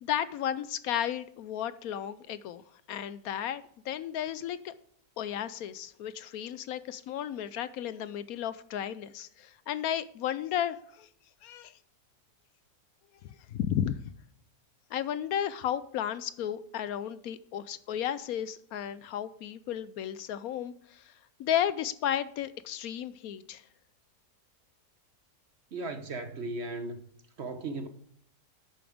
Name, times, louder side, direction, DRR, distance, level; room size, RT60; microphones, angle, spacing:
voice 1, 0.0-2.6 2.9-4.7 5.2-11.1 11.4-11.7 13.5-14.0 14.9-21.1 21.4-23.6, left 10 dB, 75° left, 1.0 m, -33 dB
voice 2, 25.7-27.0 27.4-27.9, right 2 dB, 50° right, 0.9 m, -36 dB
11.0 x 8.7 x 3.5 m
omnidirectional pair, 1.7 m